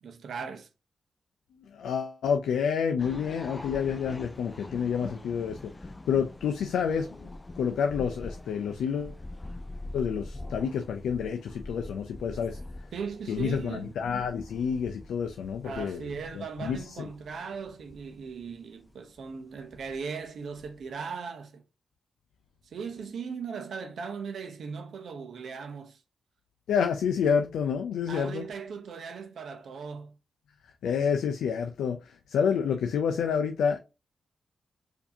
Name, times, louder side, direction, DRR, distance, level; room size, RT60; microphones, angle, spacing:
voice 1, 0.0-0.7 12.9-13.9 15.6-21.6 22.6-26.0 28.1-30.2, right 5 dB, 75° right, 0.7 m, -38 dB
voice 2, 1.7-5.7 6.1-7.3 7.6-9.2 9.9-12.6 13.3-17.0 26.7-28.5 30.8-33.8, left 7 dB, 85° left, 0.4 m, -29 dB
sound 1, 3.0-20.9, left 2 dB, 25° left, 0.4 m, -44 dB
4.6 x 2.7 x 2.7 m
supercardioid pair, 50°, 0 cm